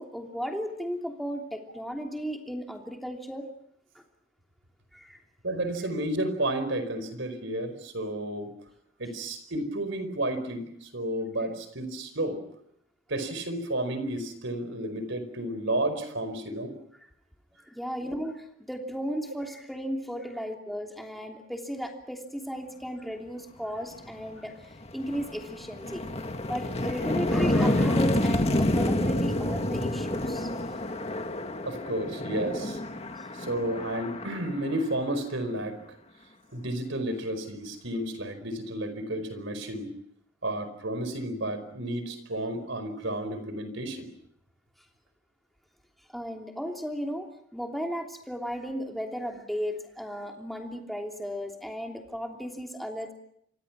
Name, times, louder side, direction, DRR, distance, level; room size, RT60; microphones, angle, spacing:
voice 1, 0.0-3.5 4.9-5.2 11.4-11.5 13.2-13.3 17.6-26.0 26.4-30.5 33.2-33.3 46.1-53.1, equal, ahead, 2 dB, 3.0 m, -35 dB
voice 2, 5.4-8.5 9.0-12.4 13.1-16.7 18.0-18.1 31.6-32.8 33.3-35.8 36.5-39.9 40.4-44.1, right 1 dB, 60° right, 11 dB, 4.9 m, -32 dB
sound 1, 24.1-24.2 24.6-35.4, left 1 dB, 30° left, 1.9 m, -28 dB
28.5 x 24.5 x 6.1 m, 0.72 s
head